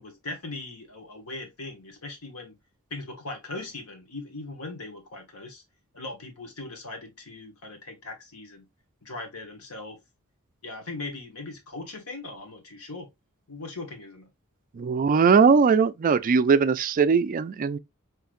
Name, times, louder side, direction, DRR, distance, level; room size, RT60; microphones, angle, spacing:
voice 1, 0.0-2.6 2.9-5.6 5.9-8.6 9.0-10.0 10.6-13.1 13.5-14.3, left 2 dB, 85° left, 1.4 m, -39 dB
voice 2, 14.7-17.8, right 5 dB, 40° right, 0.3 m, -20 dB
4.7 x 3.1 x 2.5 m
head